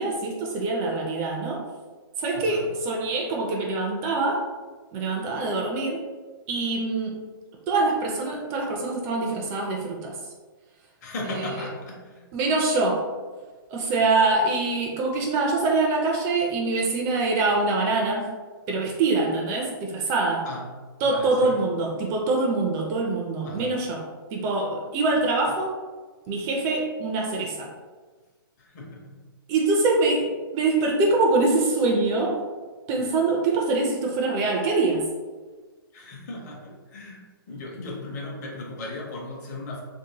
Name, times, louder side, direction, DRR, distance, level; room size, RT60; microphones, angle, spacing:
voice 1, 0.0-1.6 2.2-4.4 4.9-6.0 6.5-7.2 7.7-10.2 12.3-13.1 13.7-18.3 18.7-20.5 21.0-24.0 24.3-25.7 26.3-27.7 29.5-32.4 32.9-35.0, right 3 dB, 25° right, 0 dB, 0.4 m, -24 dB
voice 2, 2.3-2.7 11.0-12.3 20.4-20.7 21.0-21.6 23.4-23.7 28.6-29.2 35.9-39.8, left 2 dB, 45° left, -1 dB, 0.9 m, -37 dB
2.9 x 2.7 x 2.8 m, 1.4 s
hypercardioid pair, 150°, 12 cm